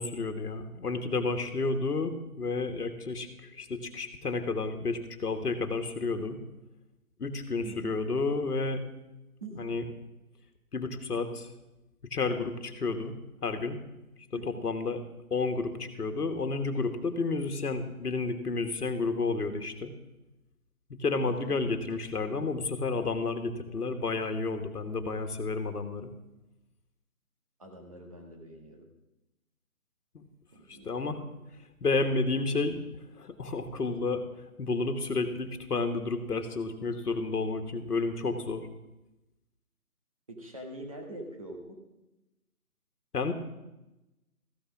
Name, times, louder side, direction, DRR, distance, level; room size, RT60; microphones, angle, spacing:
voice 1, 0.0-6.4 7.2-8.8 9.6-9.8 10.7-11.5 12.0-13.8 14.3-15.0 15.3-19.9 20.9-26.1 30.1-30.2 30.7-31.2 31.8-32.8 33.2-34.2 34.6-38.7 43.1-43.3, left 3 dB, 80° left, 7 dB, 1.6 m, -31 dB
voice 2, 7.6-8.0 9.4-9.7 14.3-14.7 21.2-21.5 27.6-28.9 30.5-31.4 40.3-41.8, right 2 dB, 25° right, 2 dB, 1.2 m, -44 dB
14.5 x 5.8 x 7.2 m, 0.97 s
hypercardioid pair, 170°, 45 cm